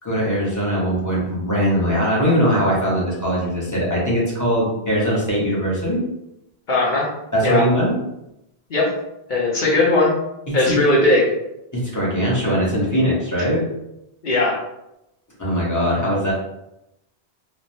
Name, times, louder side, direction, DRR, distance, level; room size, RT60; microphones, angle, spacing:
voice 1, 0.0-6.0 7.3-8.0 10.5-10.8 11.7-13.6 15.4-16.3, equal, 20° left, -6 dB, 0.8 m, -21 dB
voice 2, 6.7-7.1 7.4-7.7 8.7-8.9 9.3-10.1 10.5-11.3 14.2-14.6, left 2 dB, 55° left, -3 dB, 0.8 m, -18 dB
3.1 x 2.0 x 2.6 m, 0.87 s
omnidirectional pair, 1.0 m